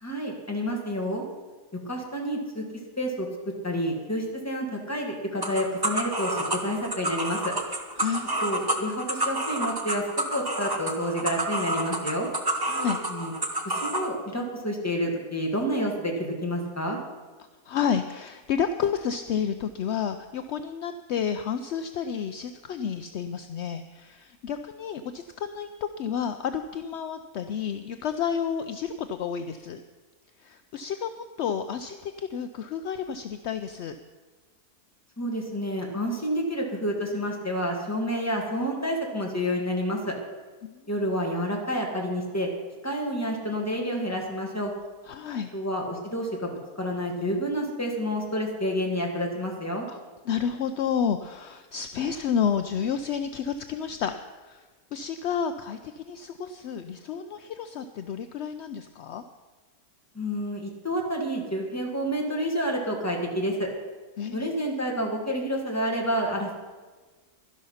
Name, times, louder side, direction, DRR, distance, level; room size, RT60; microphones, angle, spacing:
voice 1, 0.0-1.2 1.9-2.6 3.0-3.3 3.6-7.5 8.4-10.0 10.3-12.3 13.1-13.3 13.6-17.0 35.2-40.1 40.9-42.5 42.8-44.7 45.5-46.5 46.8-49.9 60.1-63.7 64.3-66.5, equal, 10° left, 0 dB, 2.0 m, -29 dB
sound 1, 5.4-14.1, right 1 dB, 20° right, 0.9 m, -29 dB
voice 2, 8.0-8.6 12.6-13.0 17.7-25.7 26.0-29.8 30.4-33.9 40.6-40.8 45.1-45.5 49.9-50.0 50.3-54.1 54.5-54.6 54.9-59.2 64.2-64.5, left 7 dB, 65° left, 8 dB, 0.7 m, -30 dB
12.0 x 11.5 x 5.6 m, 1.4 s
omnidirectional pair, 1.6 m